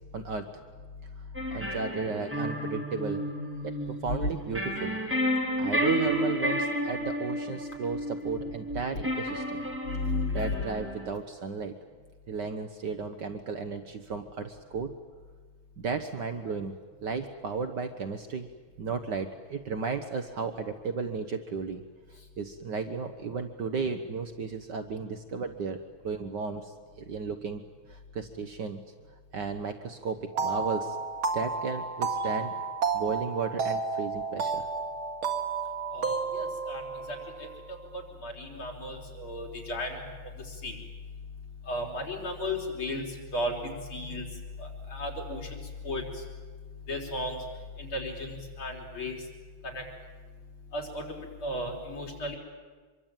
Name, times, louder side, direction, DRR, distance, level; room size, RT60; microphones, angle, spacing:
voice 1, 0.1-0.5 1.5-3.2 3.6-5.0 5.6-9.6 10.3-11.8 12.3-15.0 15.8-16.7 17.0-18.5 18.8-21.8 22.4-25.8 26.0-27.6 27.9-28.8 29.3-31.0 31.3-32.5 32.9-34.7, right 5 dB, 60° right, 8 dB, 1.7 m, -34 dB
sound 1, 1.3-11.1, equal, 5° right, 3.1 m, -31 dB
voice 2, 9.9-10.5 35.9-36.8 37.1-37.2 38.2-40.0 40.6-40.7 41.7-43.0 43.3-43.5 43.9-44.2 44.9-46.0 46.9-47.4 47.8-49.2 49.7-49.8 50.7-52.4, left 1 dB, 85° left, -1 dB, 5.4 m, -34 dB
sound 2, 30.3-37.8, right 4 dB, 85° right, 2.7 m, -32 dB
25.0 x 22.5 x 9.0 m, 1.5 s
omnidirectional pair, 2.2 m